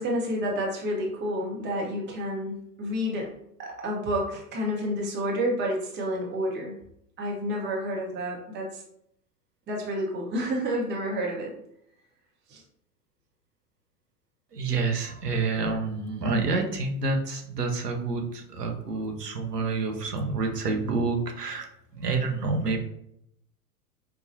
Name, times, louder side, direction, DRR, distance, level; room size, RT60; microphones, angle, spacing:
voice 1, 0.0-3.3 3.6-6.8 7.2-8.8 9.7-11.5 12.5-12.6, equal, 25° right, -2 dB, 1.0 m, -29 dB
voice 2, 14.5-21.7 21.9-22.8, right 3 dB, 80° right, 3 dB, 0.8 m, -28 dB
4.8 x 2.3 x 2.7 m, 0.74 s
figure-of-eight pair, 90°, 47 cm